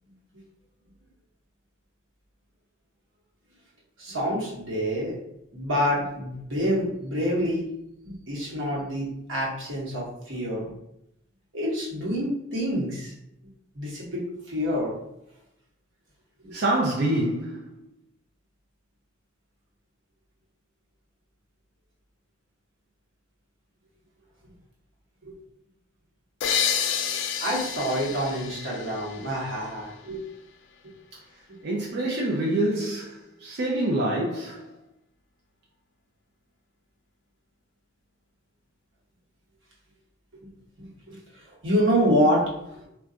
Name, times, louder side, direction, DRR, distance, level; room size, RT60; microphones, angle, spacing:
voice 1, 4.0-5.2 5.5-7.7 8.0-10.7 11.5-13.1 13.7-14.9 16.4-16.5 25.2-25.3 27.4-30.2 31.5-31.6 40.8-41.2 41.6-42.9, equal, 85° right, 1.0 m, -27 dB
voice 2, 16.5-17.7 31.6-34.7, right 1 dB, 55° right, 0.4 m, -26 dB
sound 1, 26.4-30.0, left 8 dB, 70° left, 0.3 m, -29 dB
2.3 x 2.2 x 3.7 m
head